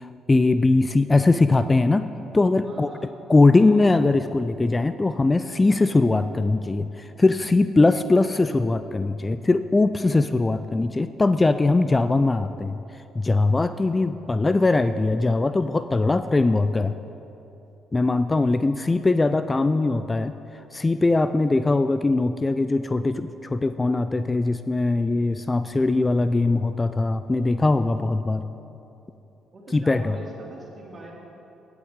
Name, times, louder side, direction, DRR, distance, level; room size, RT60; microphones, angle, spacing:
voice 1, 0.0-2.1 2.3-2.9 3.3-12.8 13.1-16.9 17.9-20.3 20.7-28.4 29.7-30.2, left 3 dB, 25° left, 12 dB, 0.3 m, -21 dB
voice 2, 2.6-3.1 3.5-3.7 29.5-31.1, right 2 dB, 40° right, -2 dB, 2.6 m, -42 dB
16.5 x 8.0 x 3.7 m, 3.0 s
hypercardioid pair, 45°, 0 cm